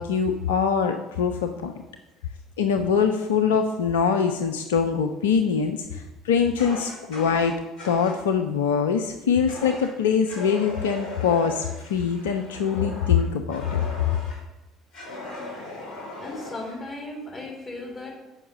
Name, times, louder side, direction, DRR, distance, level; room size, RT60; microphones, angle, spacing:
voice 1, 0.0-1.7 2.6-7.6 7.8-13.8, left 6 dB, 80° left, 6 dB, 0.5 m, -23 dB
Fire, 6.6-8.2 9.5-9.9 10.2-14.4 14.9-16.8, left 2 dB, 55° left, 3.4 m, -38 dB
voice 2, 16.2-18.1, left 2 dB, 25° left, -1 dB, 3.6 m, -36 dB
8.4 x 5.6 x 5.5 m, 1.0 s
figure-of-eight pair, 60°, 0 cm